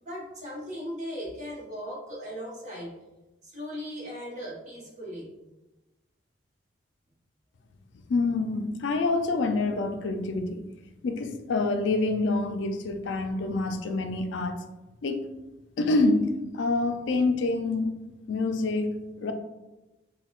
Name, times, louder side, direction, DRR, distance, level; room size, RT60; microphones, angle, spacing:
voice 1, 0.0-2.9 3.4-5.3, equal, 40° right, -4 dB, 1.1 m, -38 dB
voice 2, 8.1-10.6 11.0-14.6 15.0-15.3 15.8-18.0 18.3-18.9 19.2-19.3, left 3 dB, 75° left, 7 dB, 0.4 m, -26 dB
5.5 x 2.2 x 2.3 m, 1.0 s
head